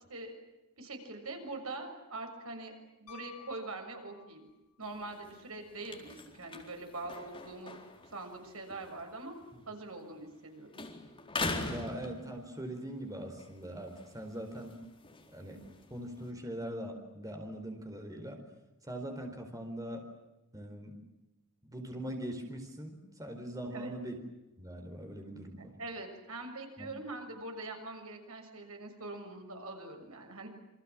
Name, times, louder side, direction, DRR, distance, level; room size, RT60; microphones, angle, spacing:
voice 1, 0.8-4.5 4.8-9.4 9.7-10.7 23.7-23.9 25.8-30.5, right 2 dB, 70° right, 4 dB, 6.7 m, -43 dB
Piano, 3.1-4.6 7.0-7.1, left 12 dB, 75° left, 2.4 m, -53 dB
sound 1, 4.8-10.5 10.7-12.8 13.2-16.3, left 3 dB, 25° left, 4.2 m, -43 dB
voice 2, 11.7-14.8 15.3-15.6 15.9-18.4 18.8-20.0 20.5-21.0 21.6-24.2 24.6-25.7 26.8-26.9, right 1 dB, 15° right, 4 dB, 4.3 m, -41 dB
29.0 x 26.5 x 7.6 m, 0.99 s
head